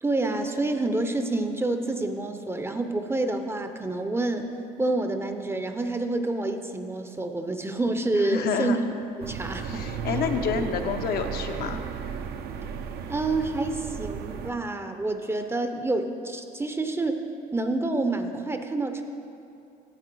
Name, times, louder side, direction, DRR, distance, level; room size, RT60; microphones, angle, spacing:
voice 1, 0.0-4.5 4.8-8.8 9.2-9.8 10.1-10.3 13.1-17.3 17.5-19.0, right 2 dB, 15° right, 7 dB, 0.5 m, -28 dB
voice 2, 8.1-8.8 9.7-11.8, left 6 dB, 65° left, 6 dB, 0.7 m, -28 dB
Street at night with cars, 9.2-14.5, right 6 dB, 70° right, 0.6 m, -34 dB
9.0 x 7.7 x 4.6 m, 2.6 s
cardioid pair, 110°, 17 cm